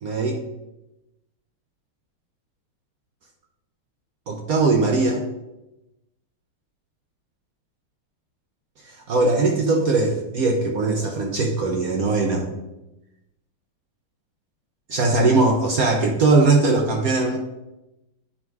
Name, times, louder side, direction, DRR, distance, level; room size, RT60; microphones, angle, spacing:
voice 1, 0.0-0.4 4.3-5.2 9.1-12.5 14.9-17.4, right 3 dB, 70° right, 2 dB, 0.8 m, -20 dB
8.7 x 3.8 x 4.6 m, 0.95 s
omnidirectional pair, 2.4 m